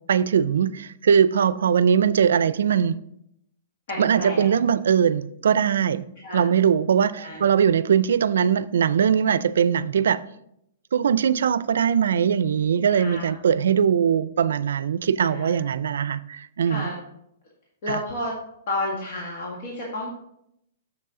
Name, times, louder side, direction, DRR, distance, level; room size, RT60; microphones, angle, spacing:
voice 1, 0.1-3.0 4.0-6.0 6.3-10.2 10.9-16.9 17.9-18.0, right 8 dB, 85° right, 0.4 m, -21 dB
voice 2, 3.9-4.5 6.2-6.5 7.2-7.4 12.9-13.4 15.2-15.7 16.7-17.0 17.8-18.4 18.7-20.1, left 1 dB, 55° left, 1.8 m, -31 dB
7.2 x 6.7 x 3.7 m
hypercardioid pair, 155°, 0 cm